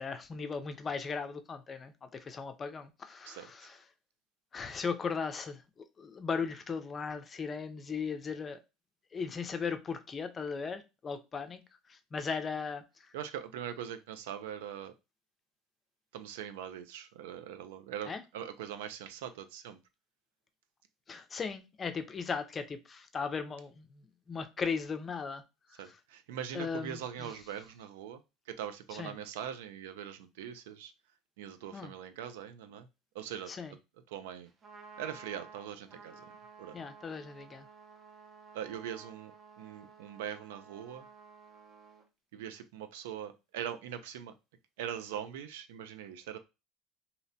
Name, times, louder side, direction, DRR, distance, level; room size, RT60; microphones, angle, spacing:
voice 1, 0.0-3.8 4.5-5.6 6.0-8.6 9.1-11.6 11.9-12.8 18.1-18.2 21.1-25.4 25.7-26.0 26.5-27.3 28.9-29.1 31.7-31.9 33.5-33.8 36.7-37.7, left 5 dB, 35° left, 0.4 m, -37 dB
voice 2, 3.2-3.7 13.1-14.9 16.1-19.8 25.8-28.2 28.5-30.9 31.4-32.9 33.1-33.5 34.1-34.5 35.0-36.3 36.6-36.8 38.5-41.1 42.3-44.3 44.8-46.4, right 9 dB, 85° right, 0.3 m, -42 dB
Trumpet, 34.5-42.1, right 4 dB, 40° right, 0.7 m, -54 dB
2.7 x 2.0 x 2.6 m
supercardioid pair, 90°, 0 cm